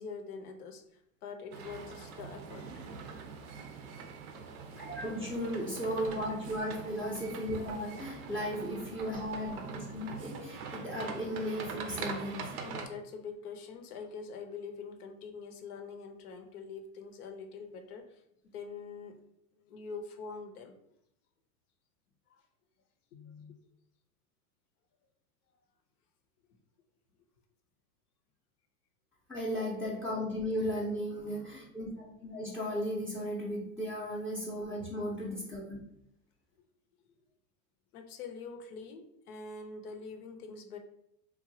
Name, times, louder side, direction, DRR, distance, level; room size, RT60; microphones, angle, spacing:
voice 1, 0.0-2.7 12.5-18.2 18.5-19.2 19.5-20.7 22.3-22.4 23.1-23.6 37.9-40.8, left 5 dB, 85° left, 5 dB, 0.6 m, -44 dB
sound 1, 1.5-12.9, right 5 dB, 80° right, 0.6 m, -43 dB
voice 2, 4.8-12.4 29.3-35.8, equal, ahead, -7 dB, 0.4 m, -35 dB
2.9 x 2.3 x 2.6 m, 0.76 s
hypercardioid pair, 105°, 44 cm